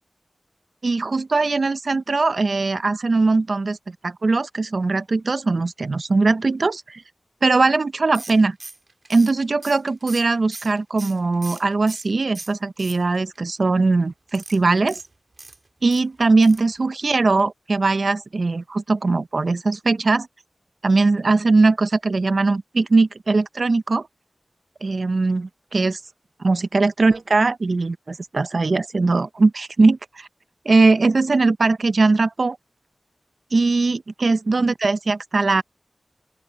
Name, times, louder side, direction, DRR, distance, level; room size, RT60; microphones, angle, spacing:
voice 1, 0.8-3.8 4.0-7.0 7.4-8.6 9.1-15.0 15.8-20.3 20.8-24.1 24.8-26.0 26.4-30.3 30.7-32.6 33.5-35.6, right 3 dB, 70° right, 0.5 m, -20 dB
sound 1, 8.1-12.1 12.3-13.4 14.3-16.0 16.4-16.7 17.0-17.1 17.4-17.5, right 2 dB, 55° right, 1.7 m, -40 dB
open air
wide cardioid pair, 65°, 0 cm